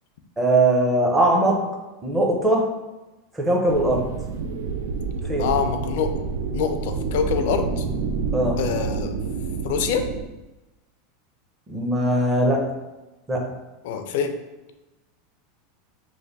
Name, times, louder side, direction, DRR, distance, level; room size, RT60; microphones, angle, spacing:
voice 1, 0.4-1.5 2.0-2.6 3.3-4.0 5.3-5.5 8.3-8.6 11.7-12.6 13.3-13.4, right 1 dB, 15° right, 0 dB, 0.7 m, -20 dB
sound 1, 3.7-10.2, right 5 dB, 85° right, 0.3 m, -28 dB
voice 2, 5.4-6.1 6.5-7.8 8.6-9.1 9.6-10.0 13.8-14.3, left 6 dB, 70° left, 7 dB, 0.4 m, -25 dB
3.2 x 2.2 x 4.0 m, 1.1 s
supercardioid pair, 130°, 0 cm